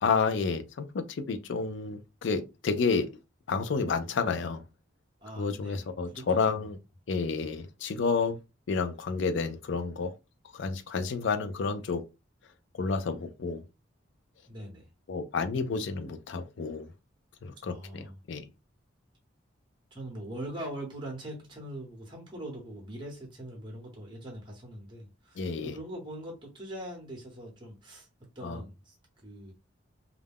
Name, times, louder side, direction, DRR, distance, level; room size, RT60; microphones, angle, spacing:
voice 1, 0.0-3.1 3.5-4.6 5.4-6.8 7.1-8.4 8.7-10.1 10.5-12.1 12.7-13.6 15.1-16.9 17.4-18.5 25.4-25.8 28.4-28.6, left 4 dB, 65° left, 0.4 m, -30 dB
voice 2, 5.2-6.7 14.5-14.9 17.6-18.1 19.9-28.1 28.3-29.0 29.2-29.5, right 1 dB, 25° right, 0.9 m, -42 dB
2.3 x 2.1 x 3.4 m
head